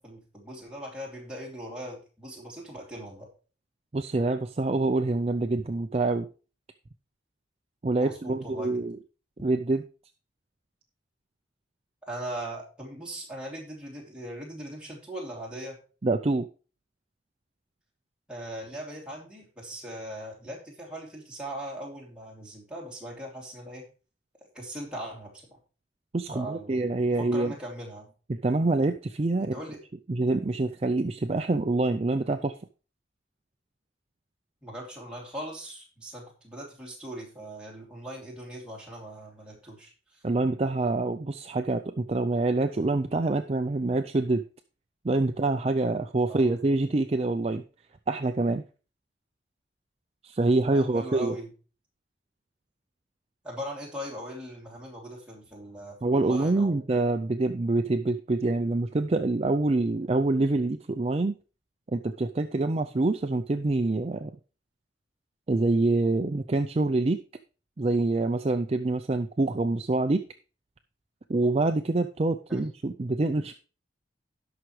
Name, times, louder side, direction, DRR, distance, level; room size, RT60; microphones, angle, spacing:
voice 1, 0.0-3.3 8.0-8.9 12.1-15.8 18.3-23.9 24.5-25.6 26.3-28.1 29.4-29.8 34.6-40.2 46.3-46.6 50.6-51.5 53.4-56.9 72.5-72.6, right 1 dB, 5° right, -3 dB, 2.8 m, -40 dB
voice 2, 3.9-6.3 7.8-9.0 9.4-9.8 16.0-16.5 26.1-27.5 28.4-29.6 30.1-32.5 40.2-44.4 45.0-47.6 48.1-48.6 50.2-51.3 56.0-61.3 61.9-64.3 65.5-67.2 67.8-70.2 71.3-73.5, right 2 dB, 30° right, 7 dB, 0.4 m, -26 dB
17.5 x 5.9 x 3.2 m, 0.35 s
head